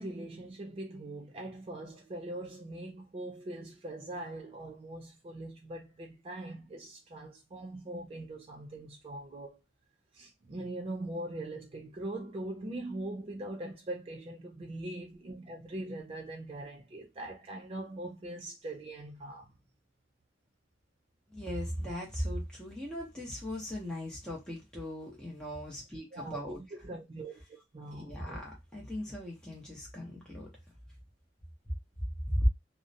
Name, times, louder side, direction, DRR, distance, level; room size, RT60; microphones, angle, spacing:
voice 1, 0.0-9.6 10.1-19.5 26.1-27.4 27.7-28.4, right 1 dB, 30° right, 0.3 m, -41 dB
voice 2, 21.3-26.6 27.9-30.5 32.3-32.5, equal, 5° left, 0.7 m, -38 dB
2.3 x 2.0 x 2.6 m
head